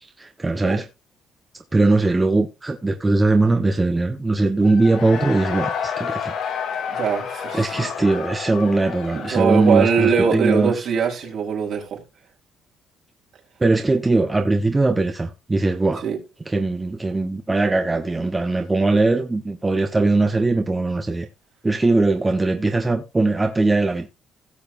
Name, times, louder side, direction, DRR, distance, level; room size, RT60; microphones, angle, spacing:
voice 1, 0.2-0.8 1.7-6.4 7.5-10.7 13.6-16.0 16.5-21.3 21.6-24.1, right 2 dB, 20° right, 1.3 m, -20 dB
Cheering / Crowd, 4.6-11.3, left 7 dB, 75° left, 2.5 m, -31 dB
voice 2, 6.9-7.9 9.1-12.0 16.0-16.2, right 6 dB, 65° right, 4.4 m, -22 dB
17.0 x 6.9 x 2.7 m
cardioid pair, 100°, 0 cm